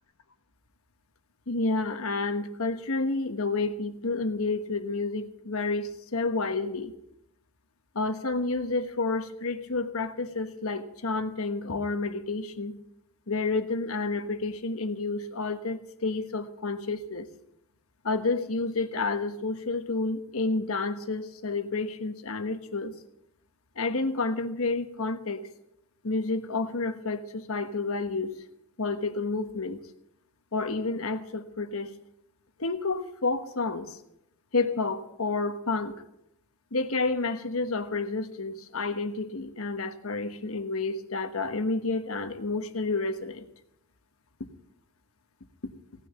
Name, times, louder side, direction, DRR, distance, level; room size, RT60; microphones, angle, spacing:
voice 1, 1.5-6.9 7.9-12.8 13.3-17.3 18.0-22.9 23.7-25.5 26.0-28.4 28.8-29.8 30.5-31.9 32.6-34.0 34.5-35.9 36.7-43.5, left 3 dB, 75° left, 8 dB, 1.3 m, -30 dB
17.5 x 6.7 x 8.8 m, 0.79 s
head